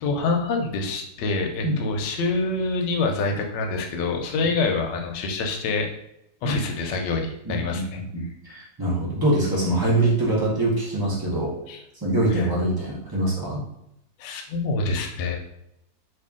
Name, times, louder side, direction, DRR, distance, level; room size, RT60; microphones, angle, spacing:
voice 1, 0.0-5.9 6.4-8.0 11.7-11.8 12.3-12.5 14.2-15.4, left 3 dB, 80° left, 3 dB, 1.2 m, -26 dB
voice 2, 7.4-7.8 8.1-11.5 12.0-13.6, right 1 dB, 35° right, -6 dB, 0.3 m, -24 dB
3.0 x 2.8 x 3.5 m, 0.79 s
omnidirectional pair, 1.9 m